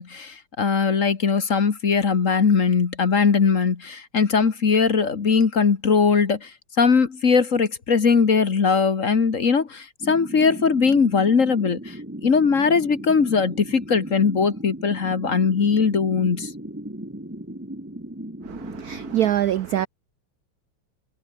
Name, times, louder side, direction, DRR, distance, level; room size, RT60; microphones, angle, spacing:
voice 1, 0.0-6.5 6.8-12.0 12.2-16.5, left 5 dB, 40° left, 1.7 m, -20 dB
sound 1, 10.0-19.3, right 1 dB, 5° right, 2.3 m, -37 dB
voice 2, 18.4-19.9, right 12 dB, 75° right, 0.8 m, -24 dB
omnidirectional pair, 2.3 m